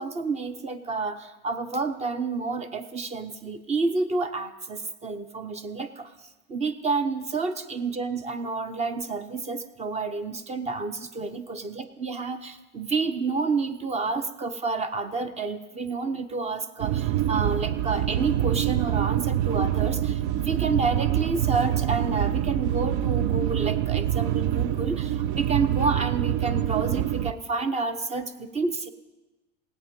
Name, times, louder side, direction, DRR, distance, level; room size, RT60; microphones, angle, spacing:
voice 1, 0.0-6.1 6.5-28.9, right 4 dB, 20° right, 10 dB, 0.8 m, -29 dB
sound 1, 16.8-27.3, right 12 dB, 65° right, 0.5 m, -25 dB
17.5 x 8.4 x 5.3 m, 1.1 s
supercardioid pair, 135°, 30 cm